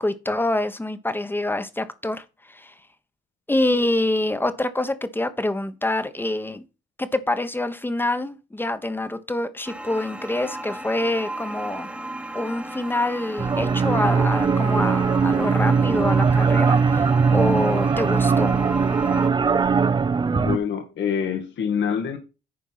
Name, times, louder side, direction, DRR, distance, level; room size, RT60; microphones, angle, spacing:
voice 1, 0.0-2.7 3.5-6.6 7.0-11.9 12.3-18.5, left 1 dB, 10° left, 1.1 m, -26 dB
sound 1, 9.6-19.3, right 1 dB, 5° right, 1.3 m, -35 dB
sound 2, 13.4-20.6, right 5 dB, 25° right, 0.5 m, -20 dB
voice 2, 20.3-22.2, left 7 dB, 65° left, 1.6 m, -26 dB
10.5 x 4.5 x 5.7 m
cardioid pair, 90°, 20 cm